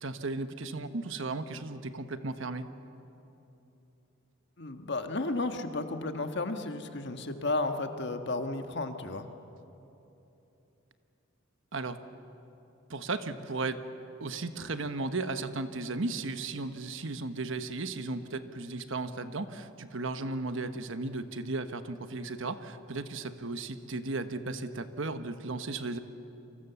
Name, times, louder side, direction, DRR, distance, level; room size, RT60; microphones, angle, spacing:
voice 1, 0.0-2.7 11.7-12.0 12.9-13.8 14.2-26.0, right 3 dB, 60° right, 9 dB, 1.2 m, -35 dB
voice 2, 4.6-9.3, left 2 dB, 55° left, 6 dB, 1.5 m, -33 dB
29.0 x 24.5 x 7.0 m, 3.0 s
head